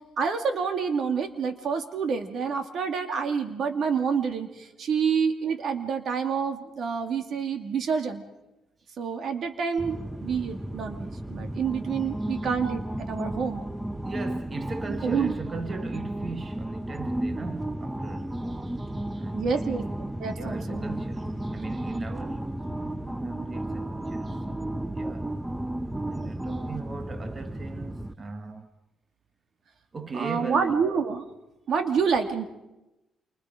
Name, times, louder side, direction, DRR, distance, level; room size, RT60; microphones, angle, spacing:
voice 1, 0.2-8.2 9.0-13.6 15.0-15.3 19.3-20.8 30.1-31.2 31.7-32.4, right 6 dB, 60° right, 2.4 m, -28 dB
sound 1, 9.8-28.1, right 1 dB, 10° right, 0.9 m, -33 dB
voice 2, 14.0-19.9 20.3-22.5 23.0-24.7 24.9-25.4 26.0-28.7 29.9-30.8, right 4 dB, 35° right, 1.4 m, -38 dB
28.0 x 24.5 x 5.1 m
cardioid pair, 90°, 0 cm